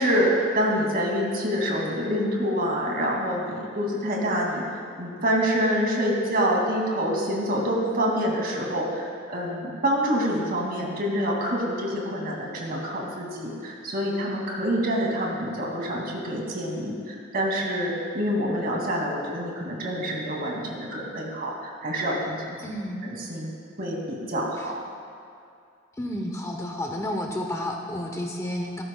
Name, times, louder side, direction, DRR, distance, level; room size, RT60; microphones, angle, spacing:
voice 1, 0.0-4.6 5.0-22.6 23.0-24.8, equal, 50° right, -2 dB, 2.5 m, -26 dB
voice 2, 22.6-23.1 24.6-24.7 26.0-28.8, left 1 dB, 15° left, 2 dB, 0.8 m, -31 dB
17.5 x 14.0 x 2.3 m, 2.5 s
head